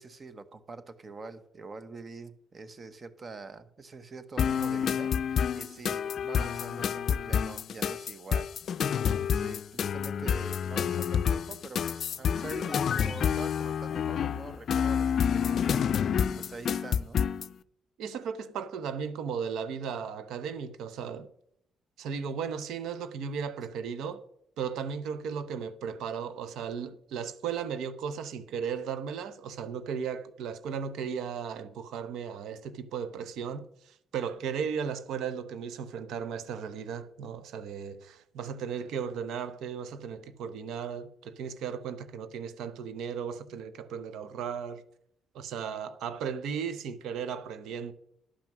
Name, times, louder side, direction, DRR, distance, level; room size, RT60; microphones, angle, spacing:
voice 1, 0.0-8.5 9.3-17.2, right 3 dB, 35° right, 0.9 m, -45 dB
sound 1, 4.4-17.5, left 8 dB, 60° left, 0.4 m, -28 dB
voice 2, 18.0-21.3 22.0-24.2 24.6-44.8 45.3-47.9, right 7 dB, 80° right, 0.7 m, -36 dB
11.5 x 5.9 x 5.9 m
cardioid pair, 90°, 0 cm